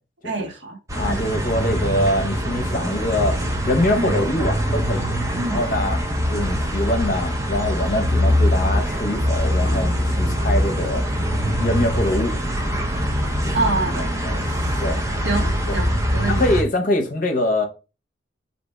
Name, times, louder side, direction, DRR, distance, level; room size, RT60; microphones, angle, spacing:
voice 1, 0.2-0.8 1.0-1.2 3.9-4.2 5.3-5.6 13.5-14.1 14.6-14.8 15.2-16.4, right 3 dB, 75° right, 0.9 m, -26 dB
voice 2, 0.9-3.4 3.7-5.1 5.5-6.0 6.3-11.1 11.6-12.3 13.4-13.6 14.2-15.0 15.7-15.8 16.3-17.7, left 1 dB, 45° left, 0.8 m, -24 dB
sound 1, 0.9-16.6, equal, 15° right, 0.6 m, -23 dB
3.4 x 2.8 x 4.4 m
head